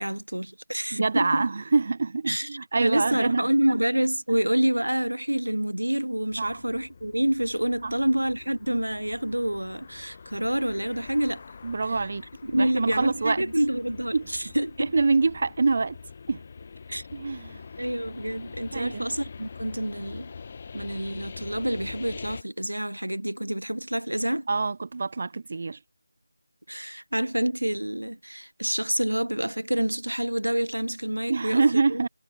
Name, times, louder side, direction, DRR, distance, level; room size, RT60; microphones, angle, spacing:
voice 1, 0.0-1.4 2.3-2.5 2.8-11.4 12.4-14.9 16.9-17.0 17.8-20.3 20.7-24.5 26.7-32.1, right 1 dB, 85° right, 1.2 m, -27 dB
voice 2, 0.9-3.8 4.3-4.4 6.4-6.6 7.8-7.9 11.6-13.4 14.1-14.3 14.8-16.0 16.3-16.4 17.1-17.6 18.7-19.1 24.5-25.8 31.3-32.1, right 4 dB, 40° right, 0.4 m, -26 dB
sound 1, 6.3-22.4, left 5 dB, 30° left, 0.8 m, -44 dB
figure-of-eight pair, 165°, 0 cm